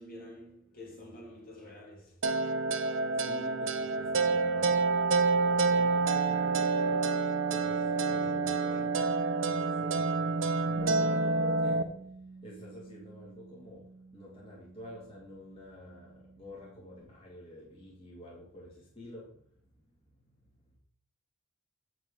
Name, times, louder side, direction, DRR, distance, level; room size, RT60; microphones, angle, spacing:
voice 1, 0.0-2.1, left 1 dB, 50° left, 2.7 m, -48 dB
sound 1, 2.2-11.8, right 4 dB, 80° right, 0.7 m, -28 dB
voice 2, 3.2-7.2 7.5-9.0 9.4-20.4, left 1 dB, 30° left, 2.2 m, -48 dB
Bass guitar, 10.8-17.0, right 3 dB, 5° right, 0.6 m, -50 dB
8.2 x 6.1 x 5.3 m
head